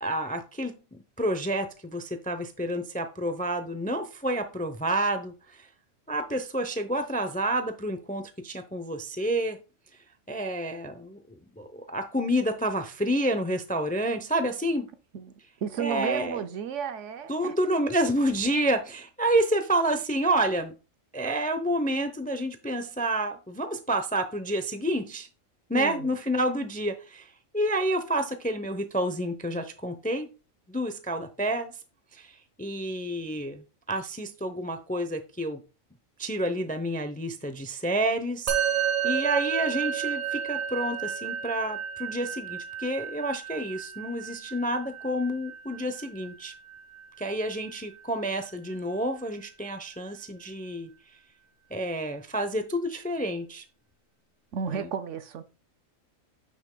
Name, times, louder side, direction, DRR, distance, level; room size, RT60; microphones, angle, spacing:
voice 1, 0.0-5.7 6.1-9.6 10.3-14.9 15.8-16.4 17.3-20.8 21.1-25.3 25.7-27.3 27.5-30.3 30.7-31.7 32.1-35.6 36.2-38.5 39.0-46.5 47.2-50.9 51.7-53.6 54.7-54.9, right 1 dB, 10° left, 0.4 m, -29 dB
voice 2, 15.6-17.5 25.7-26.1 54.5-55.4, right 7 dB, 70° right, 1.0 m, -33 dB
Musical instrument, 38.5-48.0, right 8 dB, 90° right, 1.9 m, -32 dB
9.3 x 6.1 x 2.2 m
omnidirectional pair, 1.4 m